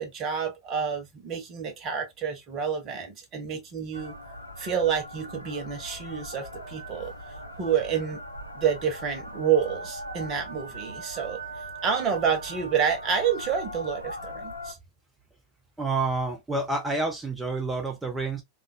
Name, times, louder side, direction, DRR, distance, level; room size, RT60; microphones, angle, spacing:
voice 1, 0.0-4.1 4.6-7.1 7.6-8.2 8.5-11.4 11.8-14.8, right 7 dB, 35° right, 0.9 m, -28 dB
sound 1, 3.9-14.7, equal, 85° left, 0.5 m, -40 dB
voice 2, 15.8-18.4, right 3 dB, 10° right, 0.7 m, -28 dB
3.6 x 2.4 x 2.2 m
figure-of-eight pair, 90°, 0 cm